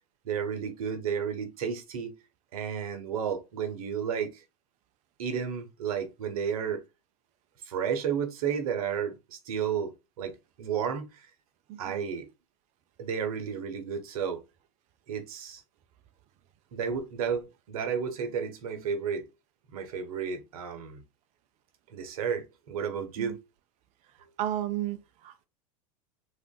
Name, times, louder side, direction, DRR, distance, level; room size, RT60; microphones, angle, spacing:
voice 1, 0.2-2.1 2.5-4.4 5.2-6.8 7.7-9.9 10.2-10.3 10.6-11.1 11.8-12.3 13.0-14.4 15.1-15.6 16.7-19.3 19.7-21.0 21.9-23.4, right 7 dB, 80° right, 0.8 m, -32 dB
voice 2, 11.7-12.0 23.2-23.4 24.4-25.4, right 12 dB, 40° right, 0.4 m, -33 dB
3.5 x 2.5 x 2.3 m
hypercardioid pair, 100°, 18 cm